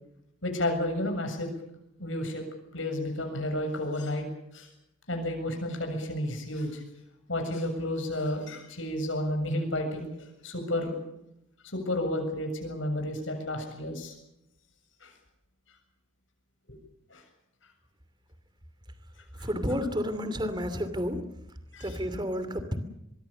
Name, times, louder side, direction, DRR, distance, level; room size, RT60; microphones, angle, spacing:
voice 1, 0.4-1.5 2.0-2.4 2.7-4.3 4.5-4.7 5.1-6.8 7.3-11.0 11.7-14.1 15.0-15.1 17.1-17.2 19.4-19.5 21.7-22.0, left 1 dB, 75° left, 4 dB, 7.5 m, -31 dB
voice 2, 19.4-21.2 21.8-22.8, equal, 20° right, 11 dB, 2.8 m, -30 dB
24.5 x 22.5 x 7.0 m, 0.84 s
head